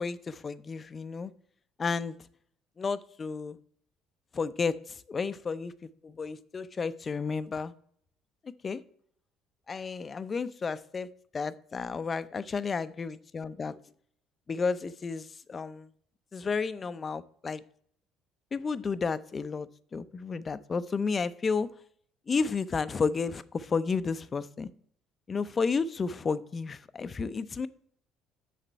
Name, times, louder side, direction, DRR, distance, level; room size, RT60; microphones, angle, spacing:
voice 1, 0.0-1.3 1.8-2.2 2.8-3.6 4.3-7.7 8.4-8.8 9.7-13.7 14.5-15.9 16.3-17.6 18.5-21.7 22.3-24.7 25.3-27.7, left 5 dB, 35° left, 13 dB, 0.6 m, -32 dB
7.3 x 6.8 x 4.5 m, 0.62 s
supercardioid pair, 70°, 0 cm